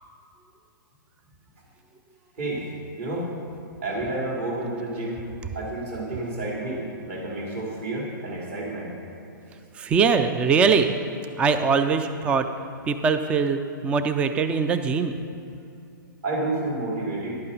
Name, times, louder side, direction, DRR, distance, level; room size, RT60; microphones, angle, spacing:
voice 1, 3.0-3.3 3.8-5.2 5.5-8.9 16.2-17.4, right 2 dB, 40° right, -3 dB, 3.1 m, -30 dB
voice 2, 9.8-10.9 11.4-12.5 12.9-15.1, right 5 dB, 10° right, 9 dB, 0.3 m, -22 dB
11.5 x 8.6 x 5.3 m, 2.7 s
hypercardioid pair, 145°, 11 cm